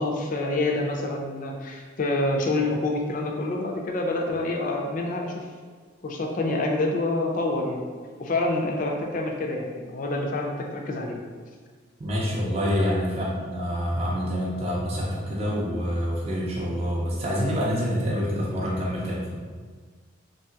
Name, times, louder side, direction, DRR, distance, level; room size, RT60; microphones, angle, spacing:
voice 1, 0.0-5.5 6.0-7.8 8.2-11.2 12.8-13.0, left 2 dB, 40° left, 1 dB, 0.3 m, -27 dB
voice 2, 12.0-19.4, equal, 30° right, -4 dB, 0.4 m, -27 dB
3.0 x 2.7 x 2.2 m, 1.6 s
head